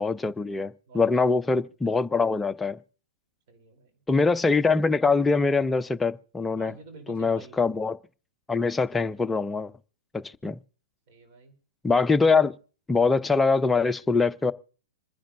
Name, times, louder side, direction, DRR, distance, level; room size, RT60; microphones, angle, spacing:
voice 1, 0.0-2.8 4.1-6.7 7.1-8.0 8.5-9.7 10.1-10.6 11.8-12.6 12.9-14.5, left 4 dB, 10° left, 0.5 m, -23 dB
voice 2, 0.9-1.3 3.5-3.9 6.6-7.6 11.1-11.5, right 3 dB, 45° right, 3.3 m, -48 dB
26.5 x 10.5 x 2.6 m
figure-of-eight pair, 110°, 0 cm